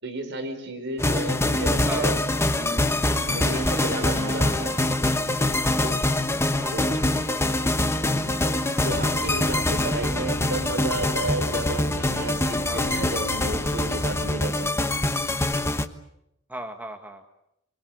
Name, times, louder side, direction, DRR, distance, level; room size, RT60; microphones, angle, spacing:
voice 1, 0.0-2.2 2.6-2.9 3.3-4.7 5.8-6.0 6.7-7.1 8.1-8.6 8.8-14.9, right 2 dB, 55° right, 5 dB, 5.7 m, -32 dB
sound 1, 1.0-15.9, left 1 dB, 10° left, 1.2 m, -24 dB
voice 2, 1.8-2.2 5.6-6.2 6.6-7.7 8.6-8.9 12.6-12.9 16.5-17.2, right 1 dB, 10° right, 4 dB, 1.6 m, -38 dB
sound 2, 3.3-5.1 6.4-6.5 7.0-7.1, right 4 dB, 30° right, 1.4 m, -42 dB
sound 3, 8.9-14.3, left 1 dB, 70° left, 2.8 m, -36 dB
25.5 x 22.5 x 8.1 m, 0.81 s
head